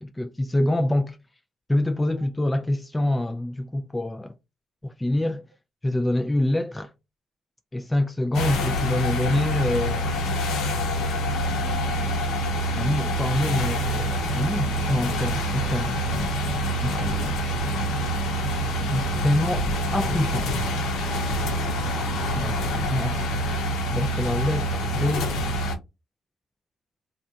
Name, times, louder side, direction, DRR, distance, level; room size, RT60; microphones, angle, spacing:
voice 1, 0.0-1.2 1.7-4.3 4.8-5.4 5.8-6.9 7.7-10.2 12.8-16.0 16.8-17.1 18.8-20.5 22.4-23.4 23.9-25.3, left 1 dB, 10° left, 0.3 m, -26 dB
sound 1, 8.3-25.8, equal, 85° left, 0.7 m, -26 dB
voice 2, 11.3-12.2 16.8-17.5 22.5-22.9, right 3 dB, 85° right, 0.7 m, -47 dB
2.6 x 2.2 x 3.6 m
cardioid pair, 90°, 0 cm